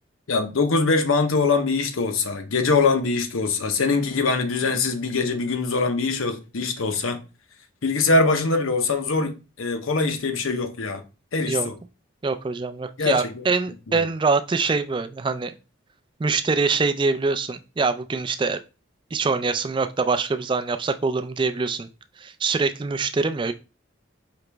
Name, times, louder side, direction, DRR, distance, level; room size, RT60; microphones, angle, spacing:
voice 1, 0.3-7.2 7.8-11.0 11.3-11.7 13.0-13.4 13.9-14.0, left 3 dB, 85° left, 0.7 m, -23 dB
voice 2, 12.2-15.5 16.2-18.6 19.1-21.9 22.2-23.5, right 4 dB, 25° right, 0.3 m, -24 dB
4.9 x 3.0 x 3.3 m
head